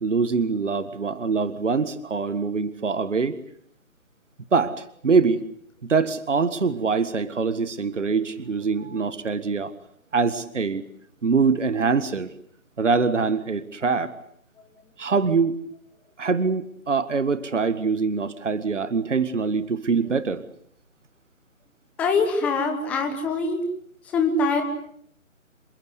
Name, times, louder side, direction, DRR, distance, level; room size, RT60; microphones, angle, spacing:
voice 1, 0.0-3.4 4.5-5.4 5.8-9.7 10.1-10.9 11.2-12.3 12.8-14.1 15.0-15.6 16.2-20.4, right 5 dB, 60° right, 14 dB, 1.9 m, -24 dB
voice 2, 22.0-23.6 24.0-24.6, left 3 dB, 5° left, 5 dB, 1.2 m, -23 dB
28.5 x 24.0 x 8.2 m, 0.65 s
figure-of-eight pair, 155°, 41 cm